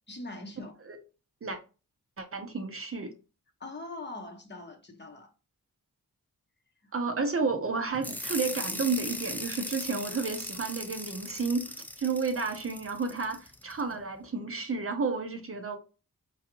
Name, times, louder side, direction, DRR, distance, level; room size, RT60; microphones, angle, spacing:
voice 1, 0.1-0.7 3.6-5.3, left 2 dB, 30° left, 0.7 m, -42 dB
voice 2, 2.2-3.1 6.9-15.8, right 4 dB, 40° right, 0.6 m, -31 dB
sound 1, 8.0-13.8, left 1 dB, 5° left, 0.3 m, -38 dB
4.7 x 2.3 x 2.9 m
wide cardioid pair, 95°, 34 cm